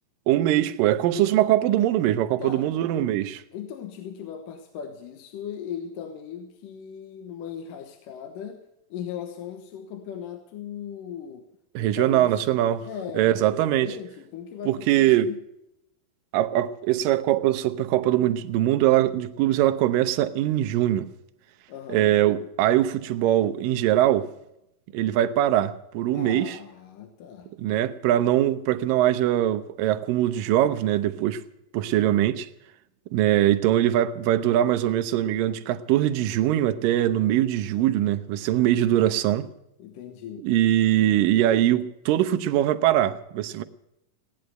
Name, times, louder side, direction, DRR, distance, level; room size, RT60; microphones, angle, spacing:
voice 1, 0.3-3.4 11.8-12.9 13.1-13.9 14.7-15.3 16.3-21.1 21.9-24.3 24.9-26.6 27.5-31.4 31.7-32.5 33.1-39.5 40.4-43.6, right 13 dB, 80° right, 2.4 m, -22 dB
voice 2, 2.4-2.7 3.5-8.6 8.9-11.5 11.8-12.4 12.8-15.4 21.7-22.2 26.1-27.5 39.8-40.5, left 8 dB, 70° left, 2.7 m, -38 dB
17.0 x 10.0 x 7.8 m
omnidirectional pair, 4.0 m